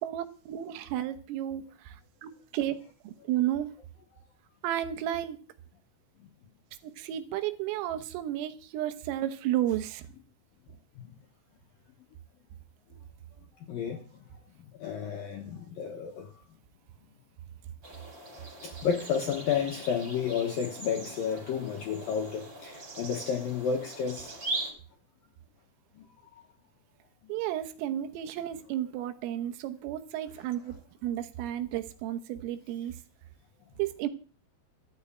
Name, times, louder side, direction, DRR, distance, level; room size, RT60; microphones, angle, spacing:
voice 1, 0.0-2.0 2.2-2.8 3.1-3.7 4.6-5.4 7.0-10.0 27.3-30.8 31.0-32.9 33.8-34.1, right 12 dB, 90° right, 3.8 m, -32 dB
voice 2, 13.7-14.0 14.8-16.3 18.6-24.3, left 7 dB, 75° left, 2.1 m, -31 dB
sound 1, 17.8-24.7, right 2 dB, 25° right, 4.1 m, -41 dB
13.0 x 6.7 x 8.6 m
omnidirectional pair, 5.8 m